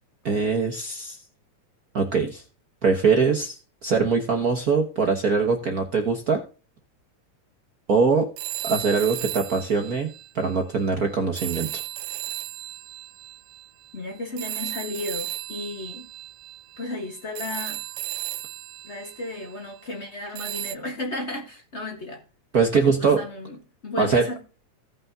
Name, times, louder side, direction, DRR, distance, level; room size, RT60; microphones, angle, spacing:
voice 1, 0.2-1.2 1.9-2.4 2.8-3.6 3.8-6.4 7.9-8.3 8.6-11.8 22.5-23.2 24.0-24.3, right 5 dB, 65° right, 2 dB, 0.9 m, -22 dB
sound 1, 8.4-10.8 11.4-19.8 20.4-20.8, right 15 dB, 80° right, 2.0 m, -35 dB
voice 2, 13.9-16.1 16.8-17.8 18.8-22.2 22.7-23.6 23.8-24.4, left 2 dB, 75° left, 3 dB, 0.6 m, -34 dB
16.5 x 5.7 x 2.7 m, 0.35 s
omnidirectional pair, 3.5 m